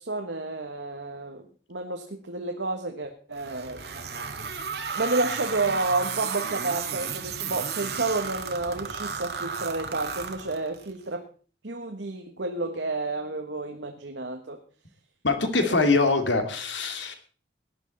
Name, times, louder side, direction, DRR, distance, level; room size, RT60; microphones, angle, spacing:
voice 1, 0.0-3.8 4.9-11.3 11.6-14.6 15.6-15.9, right 3 dB, 85° right, 4 dB, 1.5 m, -30 dB
sound 1, 3.4-10.9, right 6 dB, 60° right, 1.8 m, -33 dB
voice 2, 15.2-17.2, left 3 dB, 90° left, 7 dB, 2.5 m, -23 dB
18.0 x 11.0 x 4.1 m, 0.40 s
head